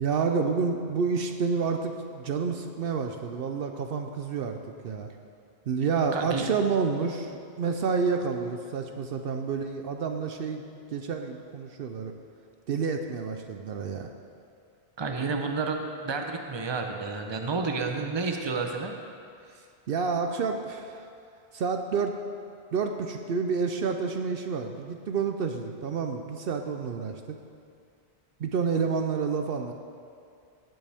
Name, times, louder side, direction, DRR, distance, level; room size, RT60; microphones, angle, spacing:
voice 1, 0.0-4.6 4.8-5.1 5.7-10.6 10.9-12.1 12.7-14.1 19.5-21.1 21.5-22.2 22.7-27.4 28.4-29.7, right 5 dB, 70° right, 5 dB, 0.8 m, -29 dB
voice 2, 6.1-6.5 15.0-19.0, right 4 dB, 30° right, 3 dB, 0.7 m, -30 dB
17.0 x 7.9 x 3.5 m, 2.4 s
omnidirectional pair, 1.0 m